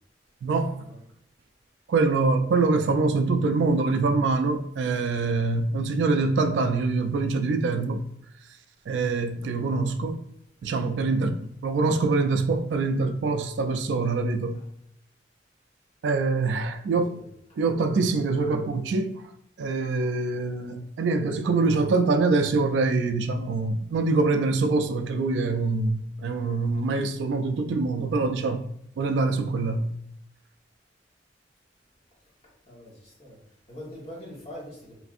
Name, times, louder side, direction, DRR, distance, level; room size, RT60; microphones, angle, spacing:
voice 1, 0.4-0.8 1.9-8.0 8.9-10.2 10.6-14.6 16.0-17.2 17.6-19.2 19.6-28.7 29.0-29.9, right 3 dB, 75° right, 0.3 m, -24 dB
voice 2, 32.7-33.4 33.7-35.0, left 1 dB, 35° left, 1.2 m, -43 dB
3.2 x 2.5 x 2.5 m
head